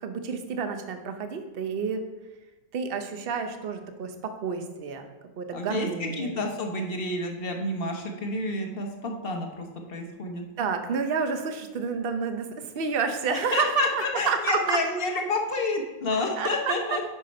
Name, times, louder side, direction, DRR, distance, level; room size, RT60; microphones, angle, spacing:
voice 1, 0.0-2.0 2.7-5.1 5.4-6.3 10.6-14.8 16.4-17.0, right 5 dB, 55° right, 7 dB, 0.6 m, -29 dB
voice 2, 5.5-10.4 13.3-17.0, left 2 dB, 40° left, 2 dB, 1.0 m, -29 dB
7.6 x 5.9 x 5.2 m, 1.1 s
omnidirectional pair, 1.9 m